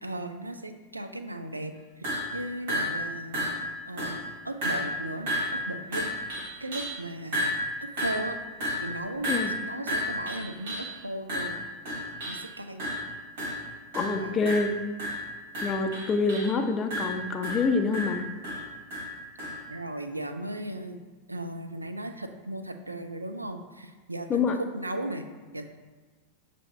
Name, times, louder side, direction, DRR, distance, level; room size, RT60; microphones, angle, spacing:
voice 1, 0.0-3.5 3.9-6.1 6.6-7.5 7.8-8.4 8.7-11.6 12.2-12.9 14.2-14.4 19.7-21.0 21.3-25.3 25.5-25.6, right 1 dB, 85° right, 7 dB, 0.3 m, -36 dB
sound 1, 2.0-2.3 2.7-3.1 3.3-3.7 4.0-4.3 4.6-5.0 5.3-7.0 7.3-10.9 11.3-12.5 12.8-13.1 13.4-13.7 13.9-14.2 14.5-16.5 16.9-19.6, equal, 55° right, 1.3 m, -32 dB
voice 2, 13.9-14.7 15.6-18.3 24.3-24.6, left 4 dB, 25° left, 5 dB, 0.4 m, -26 dB
6.2 x 2.7 x 3.1 m, 1.3 s
figure-of-eight pair, 90°, 0 cm